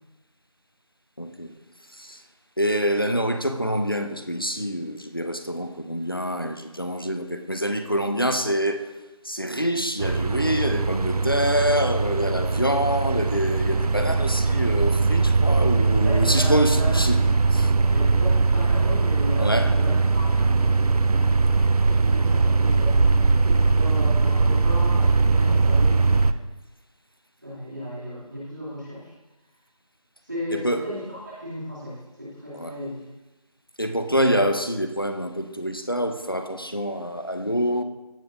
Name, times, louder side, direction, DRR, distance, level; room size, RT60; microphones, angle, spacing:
voice 1, 1.2-1.5 1.9-2.2 2.6-8.9 9.2-17.2 17.5-17.7 19.4-19.7 30.5-30.9 32.5-32.7 33.8-37.8, equal, 35° left, 7 dB, 0.5 m, -26 dB
sound 1, 10.0-26.3, right 3 dB, 75° right, 0.5 m, -21 dB
voice 2, 16.0-17.0 17.9-21.4 21.8-23.0 23.4-26.4 27.4-29.1 30.2-33.0, equal, 30° right, -9 dB, 2.5 m, -35 dB
16.0 x 5.4 x 2.6 m, 1.1 s
figure-of-eight pair, 175°, 19 cm